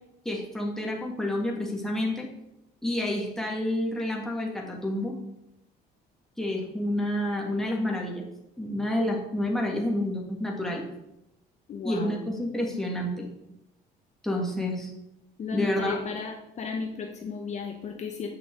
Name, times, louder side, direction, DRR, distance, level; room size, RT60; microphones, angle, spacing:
voice 1, 0.3-2.3 2.8-5.1 6.4-8.2 8.6-10.8 11.8-13.3 14.2-14.9 15.5-16.0, left 1 dB, ahead, -2 dB, 1.8 m, -29 dB
voice 2, 11.7-12.1 15.4-18.3, left 5 dB, 45° left, 2 dB, 0.9 m, -34 dB
8.0 x 5.8 x 3.8 m, 0.87 s
cardioid pair, 110°, 17 cm